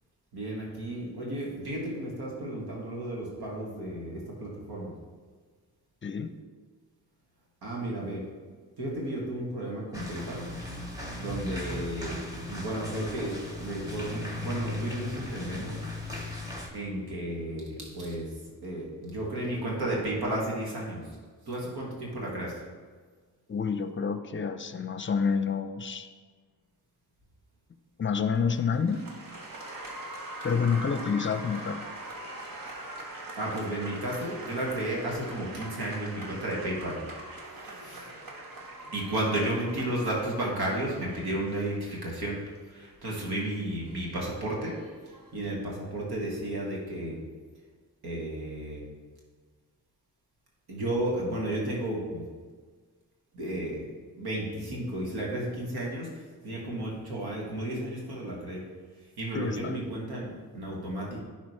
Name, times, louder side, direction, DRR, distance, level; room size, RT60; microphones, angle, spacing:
voice 1, 0.3-4.9 7.6-8.2 8.8-10.5 11.2-12.2 12.5-15.8 16.7-18.3 18.6-21.0 21.5-22.5 33.3-37.0 37.8-38.1 38.9-42.4 42.7-44.8 45.3-47.2 48.0-48.8 50.7-52.2 53.3-53.8 54.2-58.6 59.2-61.2, right 1 dB, 75° right, -3 dB, 1.8 m, -33 dB
voice 2, 6.0-6.3 23.5-26.1 28.0-29.1 30.4-31.8 59.3-59.8, left 6 dB, 30° left, 10 dB, 0.6 m, -28 dB
sound 1, 9.9-16.7, left 2 dB, 10° right, 2.1 m, -37 dB
Applause, 28.3-45.5, right 2 dB, 55° right, 1.4 m, -43 dB
10.5 x 4.2 x 3.2 m, 1.5 s
supercardioid pair, 40°, 39 cm